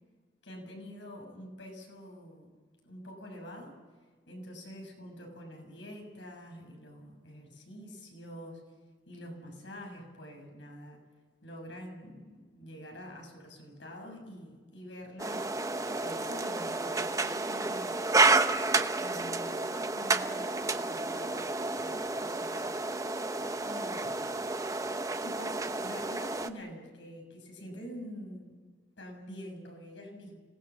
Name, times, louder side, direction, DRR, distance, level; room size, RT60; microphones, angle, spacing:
voice 1, 0.4-2.5 2.8-3.8 4.3-8.6 9.1-11.0 11.4-15.5 16.0-18.1 19.0-22.8 23.6-24.5 25.2-28.6 29.0-30.4, equal, 85° left, 2 dB, 6.9 m, -46 dB
sound 1, 15.2-26.5, right 3 dB, 20° right, 0.8 m, -30 dB
26.5 x 18.5 x 7.3 m, 1.5 s
head